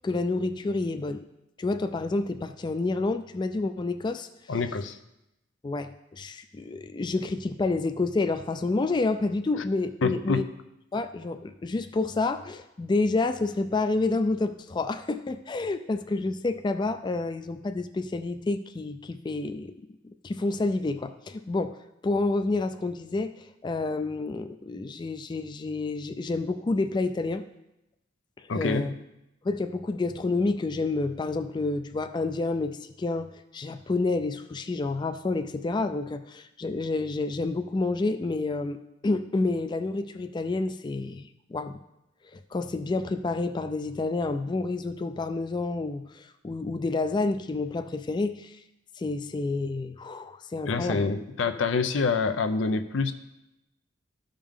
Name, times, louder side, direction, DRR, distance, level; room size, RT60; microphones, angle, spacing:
voice 1, 0.0-1.2 1.6-4.3 5.6-10.4 10.9-19.7 20.2-21.8 22.0-27.5 28.5-28.9 29.4-41.8 42.3-48.6 49.0-51.1, left 3 dB, 25° left, 9 dB, 0.3 m, -29 dB
voice 2, 4.5-5.0 10.0-10.5 28.5-28.9 50.7-53.1, left 4 dB, 85° left, 10 dB, 0.6 m, -26 dB
13.0 x 5.1 x 3.6 m, 0.88 s
head